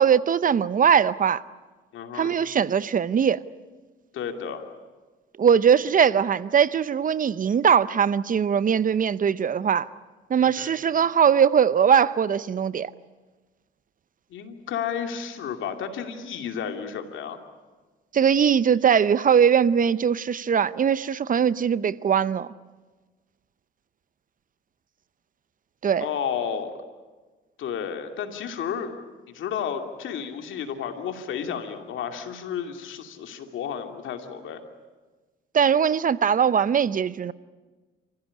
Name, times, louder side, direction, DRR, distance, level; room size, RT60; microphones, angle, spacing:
voice 1, 0.0-1.4 2.1-3.4 5.4-9.9 10.3-12.9 18.1-22.5 25.8-26.1 35.5-37.3, right 7 dB, 45° right, 0.7 m, -21 dB
voice 2, 1.9-2.3 4.1-4.6 10.4-10.7 14.3-17.4 26.0-26.7 27.6-28.9 29.3-34.6, left 7 dB, 75° left, 2.7 m, -32 dB
29.5 x 15.5 x 10.0 m
cardioid pair, 90°, 20 cm